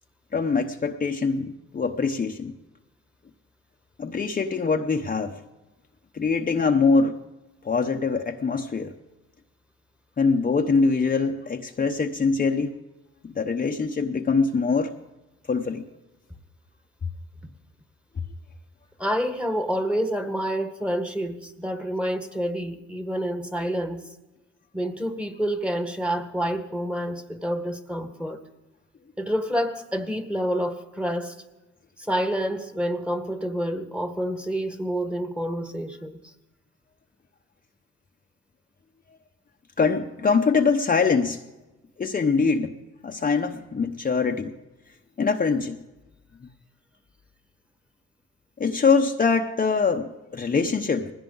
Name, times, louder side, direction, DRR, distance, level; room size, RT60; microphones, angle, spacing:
voice 1, 0.3-2.6 4.0-5.4 6.1-7.2 7.6-8.9 10.2-12.8 13.2-14.9 15.5-15.9 39.8-41.4 42.0-42.8 43.0-44.5 45.2-45.8 48.6-51.1, left 4 dB, 30° left, 3 dB, 0.8 m, -23 dB
voice 2, 19.0-24.0 24.7-28.4 29.2-31.4 32.0-36.3, equal, 5° right, 8 dB, 1.5 m, -28 dB
19.5 x 16.0 x 3.9 m, 1.0 s
cardioid pair, 90°, 30 cm